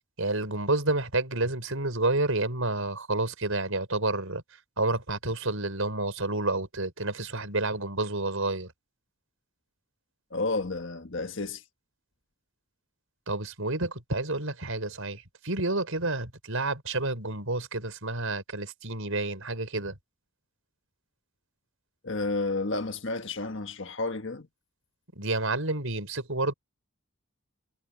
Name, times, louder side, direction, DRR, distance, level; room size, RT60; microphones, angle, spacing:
voice 1, 0.2-4.4 4.8-8.7 13.3-20.0 25.1-26.5, right 2 dB, 70° right, 4.7 m, -29 dB
voice 2, 10.3-11.6 22.0-24.5, left 3 dB, 60° left, 1.6 m, -31 dB
head